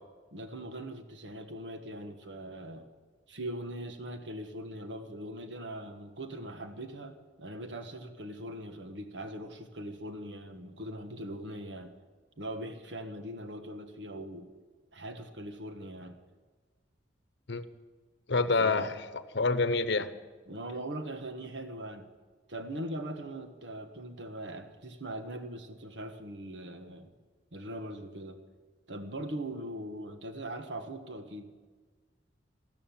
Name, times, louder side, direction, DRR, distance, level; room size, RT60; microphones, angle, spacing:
voice 1, 0.3-2.9 3.3-11.9 12.4-14.5 14.9-16.2 18.4-18.9 20.5-22.0 22.5-27.1 27.5-28.4 28.9-31.5, right 1 dB, 70° right, 7 dB, 1.4 m, -41 dB
voice 2, 18.3-20.1, left 3 dB, 65° left, 12 dB, 0.9 m, -28 dB
14.0 x 13.0 x 7.3 m, 1.4 s
head